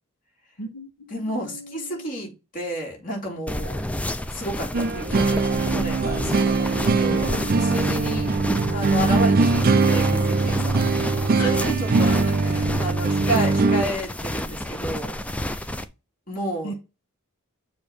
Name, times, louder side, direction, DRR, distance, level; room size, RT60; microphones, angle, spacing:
voice 1, 0.6-1.4 1.9-2.2 7.1-7.3 8.7-8.8 11.4-11.6 16.6-16.7, equal, 80° left, 2 dB, 1.3 m, -36 dB
voice 2, 1.1-3.8 4.3-8.4 8.7-10.8 11.3-15.2 16.3-16.7, equal, 40° left, -1 dB, 2.8 m, -31 dB
sound 1, 3.5-15.8, left 1 dB, 5° left, 0.5 m, -30 dB
sound 2, 4.7-13.8, right 3 dB, 45° right, 0.5 m, -21 dB
7.0 x 2.8 x 5.1 m, 0.27 s
head